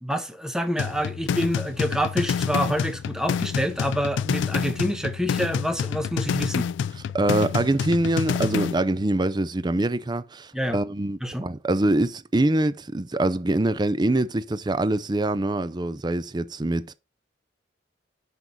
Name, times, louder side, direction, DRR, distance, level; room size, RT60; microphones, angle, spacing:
voice 1, 0.0-6.7 10.5-10.8 11.2-11.5, equal, 5° right, 1.0 m, -27 dB
sound 1, 0.8-8.8, left 7 dB, 85° left, 0.3 m, -28 dB
voice 2, 7.1-16.9, right 2 dB, 25° right, 0.5 m, -24 dB
6.1 x 5.3 x 6.2 m
head